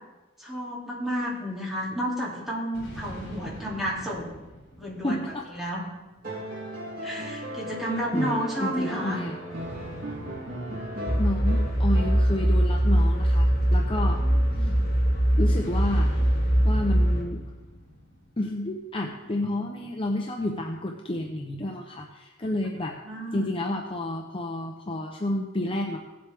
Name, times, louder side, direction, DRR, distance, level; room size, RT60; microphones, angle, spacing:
voice 1, 0.4-4.4 4.8-5.2 5.5-5.9 7.0-9.2 14.2-14.8 23.0-23.5, equal, ahead, -5 dB, 2.7 m, -31 dB
sound 1, 2.7-6.4 9.5-13.2 15.5-19.0, equal, 60° left, 3.7 m, -45 dB
voice 2, 5.0-5.5 8.1-8.4 8.6-9.4 11.2-14.2 14.6-14.7 15.4-16.1 16.6-17.4 18.4-23.0 23.3-26.0, left 1 dB, 25° left, 1 dB, 0.7 m, -30 dB
sound 2, 6.2-12.7 14.2-14.3, equal, 45° right, 3.3 m, -36 dB
sound 3, 11.1-17.2, equal, 45° left, 1.7 m, -22 dB
17.0 x 7.8 x 3.5 m, 1.1 s
head